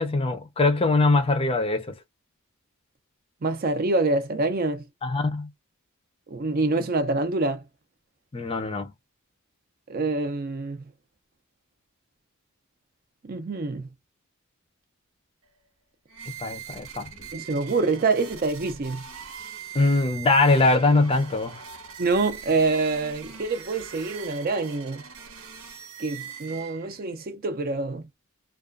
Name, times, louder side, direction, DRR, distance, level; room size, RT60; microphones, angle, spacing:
voice 1, 0.0-1.9 5.0-5.5 8.3-8.9 16.4-17.3 19.7-21.6, left 3 dB, 25° left, 0.5 m, -22 dB
voice 2, 3.4-4.8 6.3-7.6 9.9-10.8 13.2-13.9 17.3-19.1 22.0-25.0 26.0-28.1, right 3 dB, 45° right, 0.5 m, -26 dB
sound 1, 16.1-27.1, right 7 dB, 85° right, 0.9 m, -41 dB
2.4 x 2.3 x 2.2 m
head